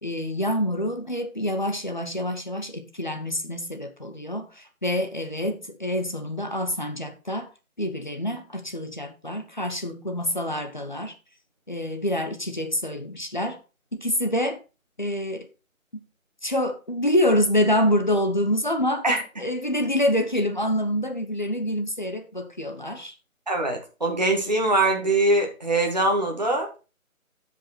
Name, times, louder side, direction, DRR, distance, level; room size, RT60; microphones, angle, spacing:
voice 1, 0.0-7.5 7.8-11.1 11.7-13.6 13.9-14.6 15.0-15.5 15.9-16.0 16.4-19.0 19.4-23.1, left 1 dB, 35° left, 1.0 m, -26 dB
voice 2, 23.5-26.8, right 2 dB, 30° right, 1.7 m, -23 dB
8.0 x 6.8 x 4.3 m
figure-of-eight pair, 180°, 42 cm